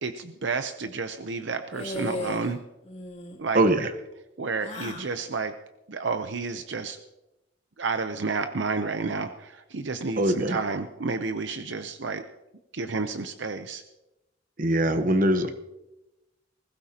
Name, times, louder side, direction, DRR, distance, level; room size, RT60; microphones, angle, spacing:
voice 1, 0.0-2.6 3.4-3.6 4.4-5.5 5.9-7.0 7.8-12.2 12.7-13.8, right 4 dB, 70° right, 8 dB, 0.7 m, -30 dB
sound 1, 1.7-2.5 2.8-3.4 4.6-5.1, left 1 dB, 35° left, 2.8 m, -36 dB
voice 2, 3.5-3.9 10.2-10.6 14.6-15.5, right 1 dB, 45° right, 8 dB, 1.1 m, -22 dB
20.5 x 16.5 x 2.9 m, 0.97 s
head